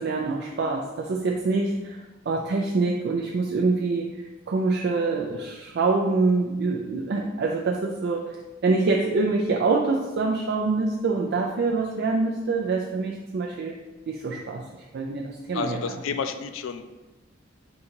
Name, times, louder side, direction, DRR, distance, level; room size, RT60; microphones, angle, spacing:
voice 1, 0.0-13.8 14.1-16.0, right 3 dB, 55° right, 0 dB, 0.4 m, -25 dB
voice 2, 15.5-16.8, left 6 dB, 80° left, 9 dB, 0.4 m, -30 dB
3.8 x 2.8 x 4.3 m, 1.1 s
head